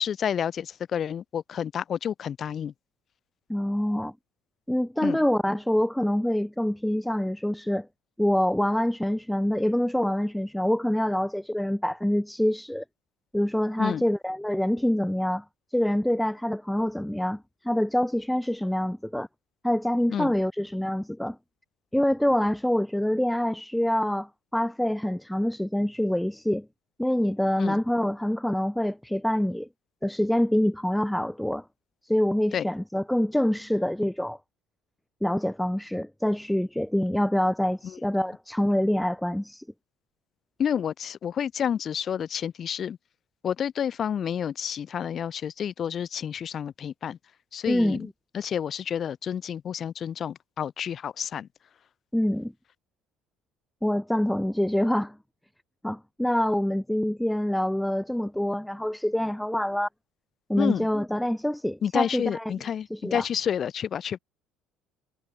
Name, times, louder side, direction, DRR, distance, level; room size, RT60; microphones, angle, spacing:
voice 1, 0.0-2.7 5.0-5.2 13.8-14.0 20.1-20.3 27.6-27.8 32.5-32.6 40.6-43.0 43.4-47.2 47.5-48.1 48.3-51.5 60.6-60.9 61.8-64.2, left 8 dB, 45° left, 1.0 m, -29 dB
voice 2, 3.5-4.1 4.7-7.9 8.2-12.8 13.3-15.4 15.7-19.3 19.6-21.4 21.9-26.7 27.0-29.7 30.0-31.6 32.0-34.4 35.2-39.6 47.7-48.1 52.1-52.5 53.8-55.2 55.8-59.9 60.5-62.5 62.9-63.2, left 1 dB, 5° left, 0.8 m, -26 dB
supercardioid pair, 90°, 0 cm